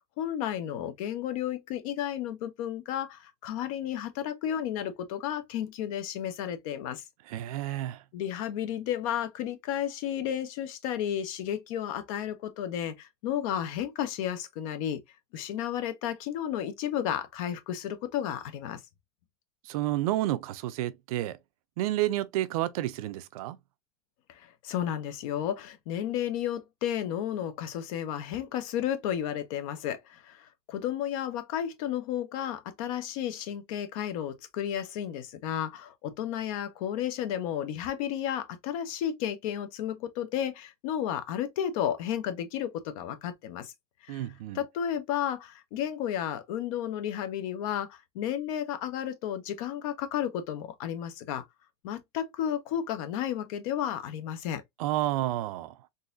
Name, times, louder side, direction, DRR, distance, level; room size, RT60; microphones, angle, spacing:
voice 1, 0.2-7.0 8.1-15.0 15.3-18.8 24.3-43.7 44.0-44.3 44.5-51.4 51.8-54.6, left 10 dB, 65° left, 0.8 m, -32 dB
voice 2, 7.3-8.0 19.6-21.4 21.8-23.6 44.1-44.6 54.8-55.7, right 15 dB, 70° right, 0.5 m, -30 dB
3.9 x 2.6 x 2.5 m
supercardioid pair, 140°, 19 cm